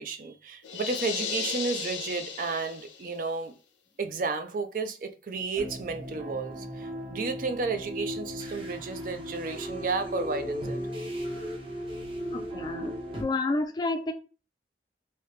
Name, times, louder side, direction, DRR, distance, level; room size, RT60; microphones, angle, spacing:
voice 1, 0.0-3.5 4.0-10.8, right 4 dB, 50° right, 0.4 m, -32 dB
sound 1, 0.6-3.1, left 6 dB, 90° left, 0.6 m, -35 dB
sound 2, 5.5-13.2, equal, 30° right, 0.8 m, -36 dB
voice 2, 12.3-14.1, left 2 dB, 20° left, 0.4 m, -30 dB
3.3 x 2.8 x 3.1 m
head